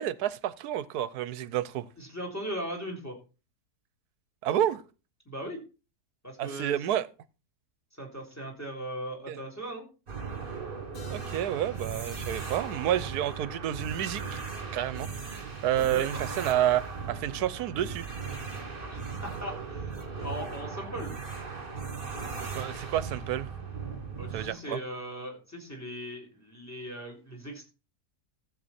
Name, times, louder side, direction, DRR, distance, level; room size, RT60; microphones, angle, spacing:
voice 1, 0.0-1.8 4.4-4.8 6.4-7.1 9.3-9.4 11.1-14.4 14.7-18.0 22.5-23.5 24.3-24.8, right 11 dB, 75° right, 1.2 m, -30 dB
voice 2, 2.0-3.2 5.3-5.6 6.2-6.8 8.0-9.9 15.9-16.2 18.8-21.2 24.2-27.7, equal, 10° left, 3.5 m, -39 dB
sound 1, 10.1-24.5, right 5 dB, 35° right, 2.0 m, -37 dB
Keyboard (musical), 10.9-16.6, left 1 dB, 60° left, 2.9 m, -53 dB
14.0 x 7.6 x 4.3 m
omnidirectional pair, 1.7 m